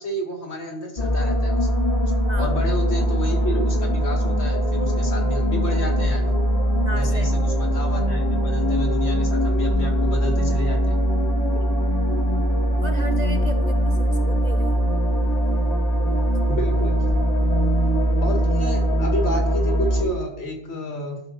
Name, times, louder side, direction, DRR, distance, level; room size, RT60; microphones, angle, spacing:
voice 1, 0.0-1.7 2.4-6.4 6.9-11.0 16.5-16.9 18.2-21.2, left 1 dB, 65° left, 1 dB, 2.2 m, -31 dB
sound 1, 1.0-20.0, equal, 30° left, 1.7 m, -21 dB
voice 2, 6.8-7.3 11.5-11.9 12.8-14.8, right 2 dB, 45° right, 6 dB, 0.6 m, -35 dB
12.5 x 4.2 x 5.8 m, 0.75 s
omnidirectional pair, 1.2 m